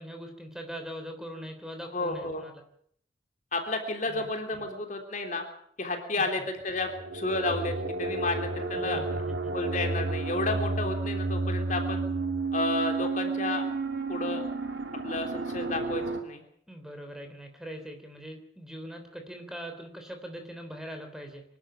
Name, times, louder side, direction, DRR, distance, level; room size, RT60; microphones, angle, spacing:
voice 1, 0.0-2.5 4.1-4.2 6.2-6.3 8.7-9.5 16.7-21.4, equal, 5° right, 5 dB, 3.4 m, -41 dB
voice 2, 1.9-2.4 3.5-5.4 5.8-9.0 9.5-12.0 12.5-13.7 14.1-14.4 15.0-16.4, left 2 dB, 45° left, 4 dB, 3.3 m, -31 dB
sound 1, 6.8-16.2, right 3 dB, 90° right, 2.7 m, -31 dB
25.0 x 12.0 x 9.0 m, 0.66 s
head